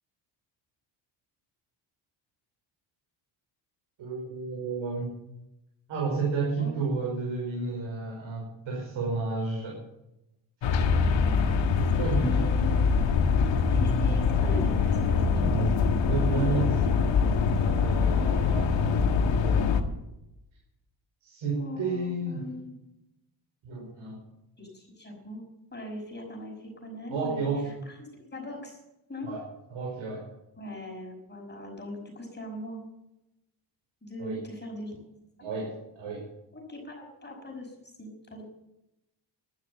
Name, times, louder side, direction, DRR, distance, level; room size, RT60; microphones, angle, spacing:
voice 1, 4.0-5.1 5.9-9.8 10.6-10.8 12.0-12.4 15.5-16.7 17.5-19.1 19.4-19.8 21.2-22.4 23.6-24.2 27.1-27.8 29.2-29.4 29.7-30.2 34.2-34.4 35.4-36.3, right 4 dB, 75° right, -1 dB, 5.5 m, -32 dB
voice 2, 6.6-6.9 10.9-12.7 13.7-15.5 16.3-17.3 21.5-22.7 24.6-25.4 25.7-27.4 27.9-28.0 28.3-28.8 29.1-29.3 30.6-32.8 34.0-35.0 36.5-38.4, left 1 dB, 20° left, 0 dB, 5.6 m, -40 dB
sound 1, 10.6-19.8, left 5 dB, 65° left, 1.8 m, -24 dB
13.0 x 12.0 x 7.1 m, 0.90 s
cardioid pair, 110°, 47 cm